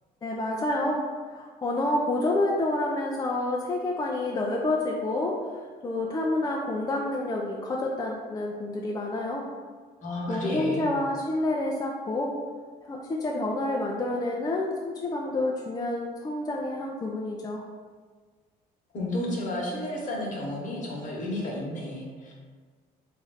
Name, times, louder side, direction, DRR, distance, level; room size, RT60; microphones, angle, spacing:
voice 1, 0.2-1.0 1.3-5.4 5.8-9.5 10.3-12.3 12.8-17.6, left 2 dB, 20° left, -2 dB, 0.3 m, -28 dB
voice 2, 10.0-11.0 18.9-22.3, left 1 dB, 50° left, -3 dB, 1.0 m, -32 dB
3.1 x 2.5 x 3.9 m, 1.5 s
cardioid pair, 110°, 17 cm